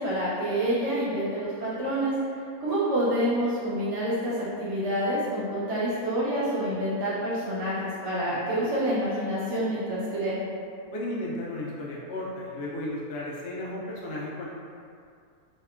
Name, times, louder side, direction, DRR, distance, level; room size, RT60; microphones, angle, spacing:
voice 1, 0.0-2.1 2.6-10.4, right 1 dB, 65° right, -9 dB, 0.8 m, -27 dB
voice 2, 10.9-14.5, left 1 dB, 75° left, -5 dB, 0.6 m, -34 dB
2.8 x 2.1 x 2.3 m, 2.3 s
omnidirectional pair, 1.6 m